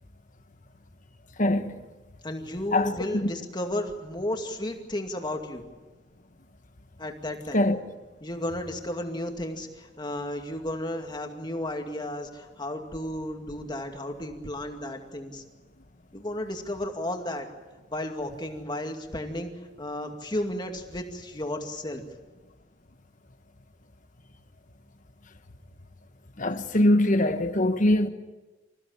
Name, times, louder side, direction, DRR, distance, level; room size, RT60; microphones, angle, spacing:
voice 1, 1.4-1.8 2.7-2.9 7.5-7.8 26.4-28.1, left 1 dB, 40° left, 1.3 m, -22 dB
voice 2, 2.2-5.6 7.0-7.6 8.2-15.4 16.1-17.5 17.9-19.5 19.8-22.0, left 1 dB, 25° left, 2.3 m, -33 dB
26.5 x 16.0 x 8.9 m
head